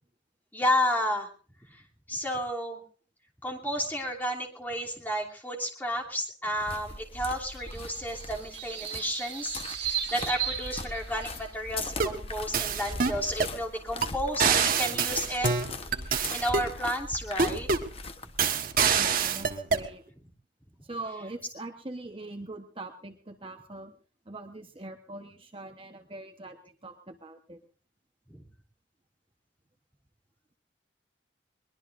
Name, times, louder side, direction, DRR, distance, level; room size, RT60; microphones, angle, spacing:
voice 1, 0.5-1.3 1.7-1.8 2.1-2.8 3.4-15.5 16.3-17.7 28.3-28.4, equal, 10° left, -2 dB, 3.0 m, -32 dB
sound 1, 6.6-18.5, left 3 dB, 35° left, 1.1 m, -40 dB
sound 2, 7.5-11.5, right 9 dB, 75° right, 3.5 m, -36 dB
sound 3, 11.8-12.2 12.5-13.6 14.0-14.1 14.4-16.7 17.4-17.9 18.4-19.9, right 5 dB, 50° right, 1.4 m, -26 dB
voice 2, 19.0-20.0 20.8-23.9 24.3-27.6, right 2 dB, 30° right, 4 dB, 1.1 m, -42 dB
22.5 x 21.0 x 2.6 m, 0.41 s
head